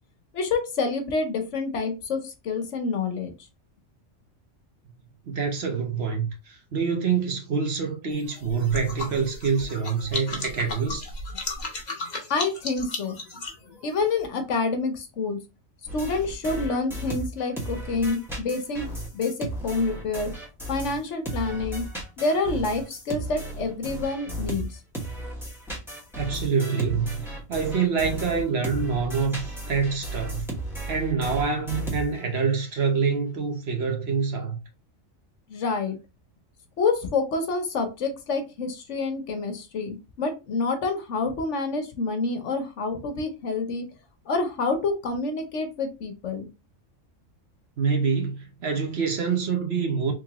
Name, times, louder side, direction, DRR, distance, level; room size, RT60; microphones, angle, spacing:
voice 1, 0.3-3.3 12.3-13.2 13.8-15.4 15.9-20.3 20.7-21.8 22.2-24.8 35.5-36.0 36.8-43.8 44.3-46.5, left 3 dB, 70° left, 1.1 m, -27 dB
voice 2, 5.3-11.1 26.2-27.1 27.5-30.5 30.9-34.6 47.8-50.1, right 5 dB, 55° right, 1.0 m, -26 dB
sound 1, 8.1-14.3, left 3 dB, 40° left, 1.0 m, -35 dB
sound 2, 15.9-21.0 21.3-32.4, right 1 dB, ahead, 1.0 m, -35 dB
3.7 x 3.1 x 2.9 m
omnidirectional pair, 1.3 m